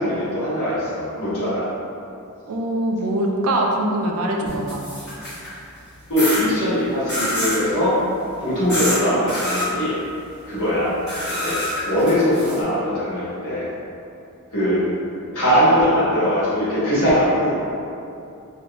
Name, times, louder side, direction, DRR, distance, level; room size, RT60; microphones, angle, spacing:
voice 1, 0.0-1.7 6.1-8.0 8.4-10.0 10.5-11.0 11.2-13.7 14.5-14.8 15.3-17.5, equal, 75° left, -11 dB, 1.4 m, -21 dB
voice 2, 2.5-4.9, right 1 dB, 75° right, 1 dB, 0.4 m, -23 dB
sound 1, 4.5-5.5 6.2-6.4 7.1-7.6 8.7-9.0 9.3-9.7 11.1-12.6, left 1 dB, 20° left, 1.4 m, -26 dB
3.1 x 2.5 x 2.9 m, 2.6 s
head